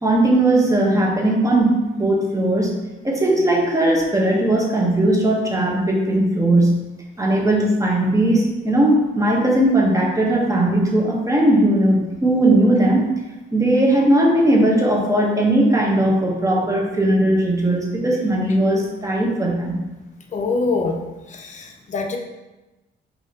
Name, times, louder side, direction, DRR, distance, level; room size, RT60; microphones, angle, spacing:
voice 1, 0.0-2.7 3.0-6.8 7.2-13.1 13.5-19.8, right 1 dB, 15° right, -2 dB, 1.0 m, -18 dB
voice 2, 20.3-21.0 21.3-22.2, left 3 dB, 40° left, 2 dB, 0.7 m, -24 dB
5.4 x 2.8 x 2.8 m, 1.1 s
cardioid pair, 90°, 20 cm